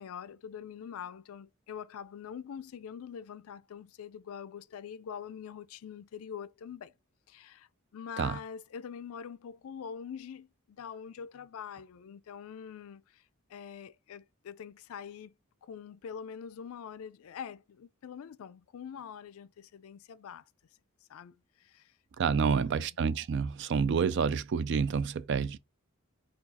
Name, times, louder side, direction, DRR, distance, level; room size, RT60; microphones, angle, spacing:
voice 1, 0.0-6.9 7.3-13.2 13.5-15.3 15.6-20.4 21.1-21.9 22.4-22.9, left 7 dB, 70° left, 0.3 m, -44 dB
voice 2, 22.2-25.6, right 6 dB, 55° right, 0.3 m, -28 dB
4.6 x 2.4 x 4.0 m
head